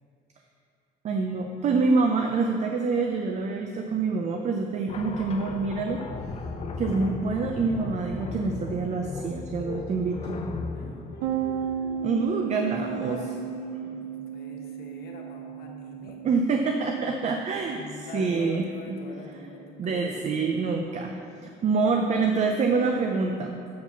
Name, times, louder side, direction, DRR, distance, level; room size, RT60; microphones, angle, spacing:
voice 1, 1.0-6.0 6.8-10.2 12.0-13.2 16.2-18.6 18.9-19.0 19.8-21.1 21.4-23.7, right 4 dB, 45° right, 3 dB, 0.6 m, -26 dB
sound 1, 4.9-12.3, left 3 dB, 35° left, 0.6 m, -36 dB
voice 2, 10.7-12.3 12.7-16.2 17.7-20.3 21.9-22.7, left 3 dB, 70° left, 0 dB, 1.2 m, -44 dB
sound 2, 11.2-20.7, right 8 dB, 85° right, 0.6 m, -36 dB
7.3 x 4.7 x 5.8 m, 2.6 s
cardioid pair, 110°, 17 cm